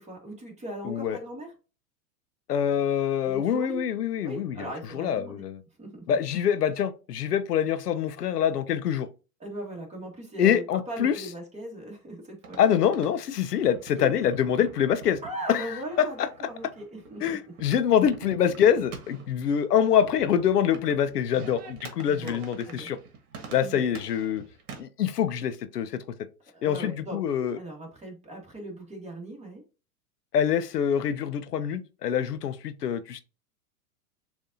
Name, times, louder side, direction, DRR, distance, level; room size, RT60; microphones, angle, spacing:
voice 1, 0.0-1.5 3.2-3.8 4.2-5.4 5.8-6.0 9.4-12.7 13.9-14.1 15.2-17.4 22.0-22.9 23.6-23.8 26.5-27.2 27.5-29.6, right 1 dB, 15° right, 1.8 m, -39 dB
voice 2, 0.8-1.2 2.5-4.7 4.9-5.6 6.1-9.1 10.4-11.3 12.6-15.2 15.5-16.3 17.2-23.0 23.5-24.4 24.8-26.0 26.6-27.6 30.3-33.2, left 9 dB, 85° left, 0.6 m, -25 dB
sound 1, 12.4-24.8, right 5 dB, 50° right, 1.5 m, -46 dB
6.9 x 2.7 x 2.7 m
hypercardioid pair, 110°, 46 cm